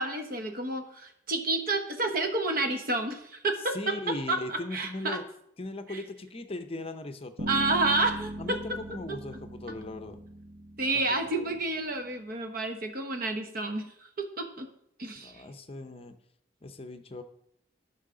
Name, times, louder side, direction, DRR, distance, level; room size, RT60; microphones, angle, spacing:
voice 1, 0.0-3.8 4.3-5.2 5.9-6.0 7.5-8.6 10.8-14.1 14.4-14.7 15.0-15.3, right 2 dB, 50° right, 6 dB, 1.1 m, -30 dB
voice 2, 3.7-5.2 5.6-7.5 8.4-10.2 10.9-11.6 15.2-16.2 16.6-17.2, left 2 dB, 30° left, 9 dB, 0.6 m, -39 dB
sound 1, 7.4-11.7, equal, 85° right, 1.6 m, -39 dB
12.5 x 5.6 x 3.8 m, 0.73 s
head